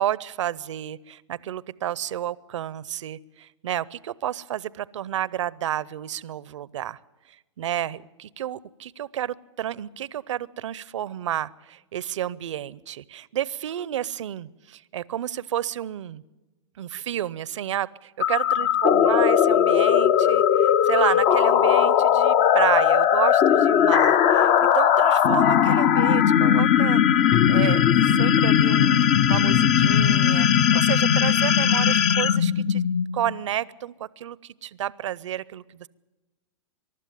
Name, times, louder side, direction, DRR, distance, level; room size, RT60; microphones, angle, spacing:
voice 1, 0.0-7.0 7.6-16.2 16.8-27.0 27.5-32.8 33.1-35.9, right 11 dB, 70° right, 22 dB, 0.6 m, -30 dB
sound 1, 18.2-33.3, left 9 dB, 35° left, 0.7 m, -19 dB
23.0 x 12.0 x 9.3 m, 1.1 s
hypercardioid pair, 120°, 16 cm